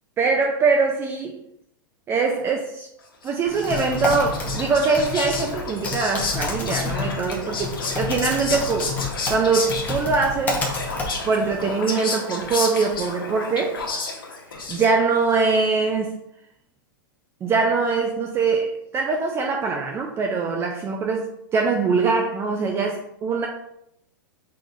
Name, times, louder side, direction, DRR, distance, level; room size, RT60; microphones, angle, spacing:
voice 1, 0.2-1.4 2.1-2.9 3.2-8.9 9.3-10.6 11.3-13.8 14.7-16.2 17.4-23.5, right 4 dB, 20° right, 2 dB, 0.4 m, -23 dB
Whispering, 3.2-15.2, left 3 dB, 90° left, 1.0 m, -31 dB
Typing, 3.4-11.6, left 3 dB, 15° left, 0.9 m, -30 dB
4.7 x 3.8 x 2.5 m, 0.78 s
hypercardioid pair, 125°, 11 cm